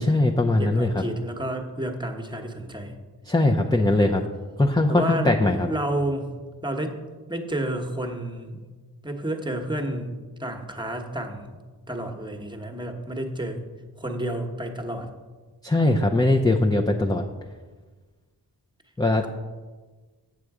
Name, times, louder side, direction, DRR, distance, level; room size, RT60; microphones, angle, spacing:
voice 1, 0.0-1.0 3.3-4.2 4.6-5.7 15.6-17.2 19.0-19.3, left 2 dB, 10° left, 1 dB, 0.6 m, -21 dB
voice 2, 0.6-2.9 3.6-4.1 4.9-6.3 6.6-7.0 7.3-8.6 9.0-11.5 11.9-13.7 14.0-15.1, right 1 dB, 10° right, 3 dB, 1.1 m, -30 dB
7.8 x 6.8 x 4.8 m, 1.4 s
cardioid pair, 55°, 43 cm